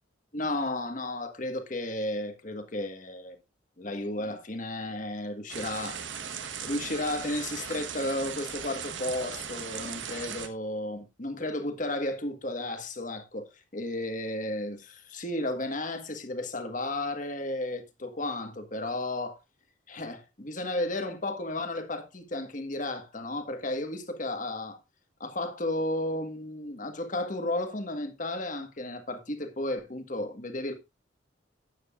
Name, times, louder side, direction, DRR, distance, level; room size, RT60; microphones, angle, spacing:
voice 1, 0.3-3.4 3.8-6.3 6.6-19.4 19.9-24.8 25.2-30.7, left 1 dB, 40° left, 1.5 m, -33 dB
sound 1, 5.5-10.5, right 7 dB, 75° right, 1.3 m, -38 dB
13.0 x 9.4 x 2.5 m
head